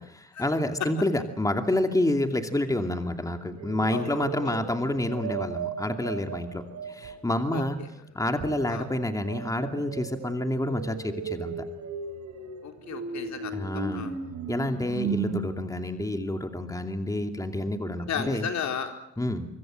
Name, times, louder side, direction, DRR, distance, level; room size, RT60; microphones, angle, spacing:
voice 1, 0.1-7.8 8.1-11.6 13.5-14.0 14.5-18.5 19.2-19.5, left 1 dB, 10° left, 5 dB, 2.6 m, -28 dB
sound 1, 3.5-7.2 8.4-15.4, right 6 dB, 65° right, 4.2 m, -36 dB
voice 2, 3.9-4.5 7.5-7.9 8.7-8.9 12.6-14.2 18.1-19.0, left 7 dB, 65° left, 5 dB, 4.0 m, -34 dB
25.0 x 24.5 x 7.7 m, 0.76 s
cardioid pair, 90°, 30 cm